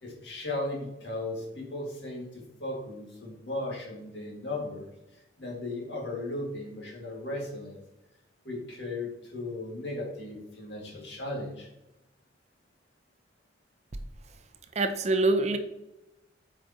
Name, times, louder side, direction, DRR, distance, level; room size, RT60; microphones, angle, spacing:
voice 1, 0.0-4.9 5.4-7.8 8.4-11.7, left 2 dB, 75° left, -2 dB, 2.3 m, -36 dB
voice 2, 14.8-15.6, right 2 dB, 40° right, 8 dB, 0.6 m, -24 dB
7.8 x 5.0 x 3.0 m, 0.92 s
head